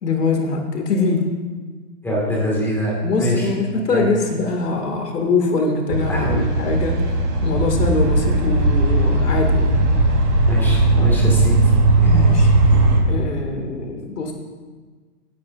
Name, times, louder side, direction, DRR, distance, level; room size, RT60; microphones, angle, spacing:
voice 1, 0.0-1.3 3.0-7.0 7.4-9.7 11.0-11.2 12.0-12.5 13.1-14.3, left 3 dB, 75° left, 2 dB, 2.4 m, -23 dB
voice 2, 2.0-2.9 3.2-3.5 3.9-4.1 6.1-6.4 10.5-11.6 12.0-12.2, equal, 5° left, -4 dB, 2.0 m, -23 dB
sound 1, 5.9-13.0, right 2 dB, 75° right, 3.4 m, -17 dB
18.0 x 9.4 x 2.6 m, 1.4 s
hypercardioid pair, 145°, 47 cm